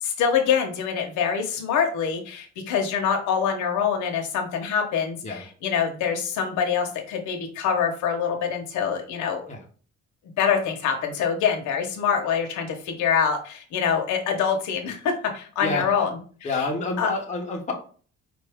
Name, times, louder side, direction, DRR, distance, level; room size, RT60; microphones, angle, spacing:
voice 1, 0.0-9.5 10.4-16.1 16.6-16.7 17.0-17.1, left 7 dB, 85° left, 3 dB, 1.0 m, -25 dB
voice 2, 16.4-17.7, left 3 dB, 25° left, 0 dB, 1.0 m, -28 dB
5.0 x 2.7 x 3.4 m, 0.41 s
cardioid pair, 145°, 29 cm